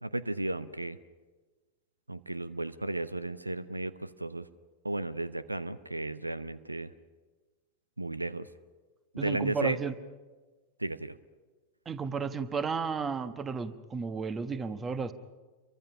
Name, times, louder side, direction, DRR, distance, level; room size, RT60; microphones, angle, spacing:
voice 1, 0.0-1.0 2.1-4.5 4.8-6.9 8.0-8.5 9.1-9.8 10.8-11.1, right 2 dB, 85° right, 16 dB, 0.7 m, -34 dB
voice 2, 9.2-9.9 11.8-15.1, right 5 dB, 20° right, 12 dB, 1.3 m, -33 dB
29.5 x 23.5 x 5.7 m, 1.3 s
figure-of-eight pair, 90°, 0 cm